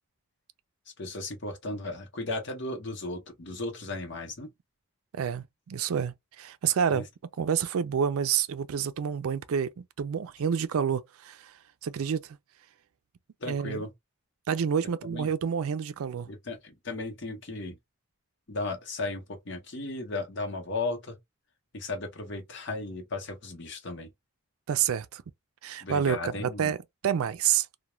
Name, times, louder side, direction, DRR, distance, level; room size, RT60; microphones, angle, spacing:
voice 1, 1.0-4.5 6.9-7.0 13.4-13.9 15.0-15.3 16.3-17.8 18.5-21.2 21.7-24.1 25.8-26.7, left 2 dB, 55° left, 0.8 m, -35 dB
voice 2, 5.1-7.1 7.4-11.5 11.8-12.4 13.5-13.8 14.5-16.3 24.7-25.2 25.6-26.8 27.0-27.7, right 8 dB, 75° right, 0.4 m, -28 dB
2.3 x 2.2 x 3.0 m
head